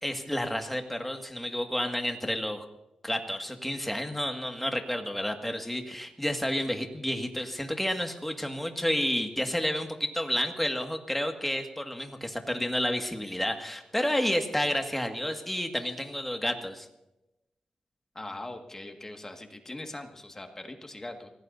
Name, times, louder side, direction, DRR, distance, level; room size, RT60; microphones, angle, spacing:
voice 1, 0.0-2.7 3.0-16.9, left 1 dB, 5° left, 4 dB, 1.9 m, -30 dB
voice 2, 18.1-21.3, left 2 dB, 25° left, 4 dB, 1.9 m, -41 dB
25.0 x 17.0 x 2.7 m, 0.93 s
cardioid pair, 80°, 2 cm